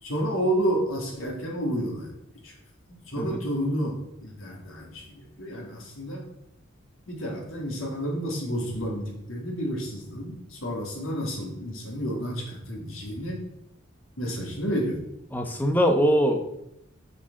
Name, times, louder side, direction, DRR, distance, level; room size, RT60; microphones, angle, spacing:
voice 1, 0.0-2.1 2.4-2.6 3.1-6.3 7.1-13.4 14.2-15.0, equal, 85° left, -2 dB, 3.4 m, -30 dB
voice 2, 15.3-16.4, equal, 10° left, 4 dB, 1.1 m, -22 dB
7.3 x 7.2 x 7.3 m, 0.81 s
head